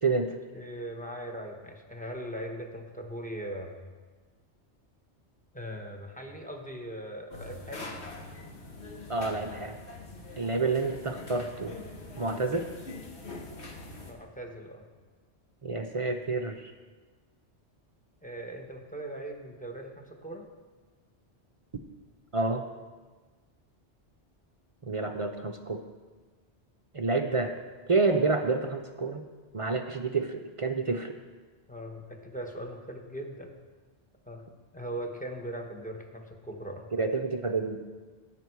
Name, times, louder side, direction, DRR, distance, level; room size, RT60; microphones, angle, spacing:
voice 1, 0.5-3.7 5.5-8.0 14.1-14.8 18.2-20.5 31.7-33.6 34.2-34.4 34.7-36.9, right 1 dB, 5° left, 2 dB, 1.1 m, -40 dB
sound 1, 7.3-14.1, left 2 dB, 70° left, 1.6 m, -43 dB
voice 2, 9.1-9.8 10.4-11.7 12.2-12.7 15.6-16.7 22.3-22.6 24.8-25.8 26.9-27.5 27.9-29.2 29.5-31.1 36.9-37.8, right 3 dB, 40° right, 5 dB, 0.5 m, -28 dB
17.5 x 6.0 x 4.6 m, 1.4 s
omnidirectional pair, 1.2 m